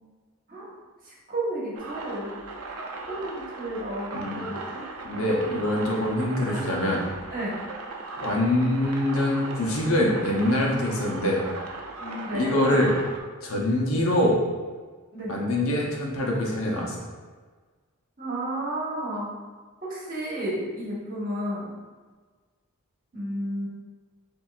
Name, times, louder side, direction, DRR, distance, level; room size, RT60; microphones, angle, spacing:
voice 1, 1.3-2.3 3.0-4.9 7.3-7.6 12.0-12.5 15.1-15.3 18.2-19.3 19.8-21.7 23.1-23.7, right 1 dB, 40° right, -6 dB, 1.3 m, -32 dB
sound 1, 1.7-13.2, right 3 dB, 85° right, 0.6 m, -38 dB
voice 2, 4.1-4.5 5.0-7.0 8.2-11.4 12.3-13.0 13.4-14.4 15.3-17.0, left 1 dB, 70° left, -2 dB, 0.9 m, -24 dB
7.1 x 2.8 x 2.4 m, 1.4 s
head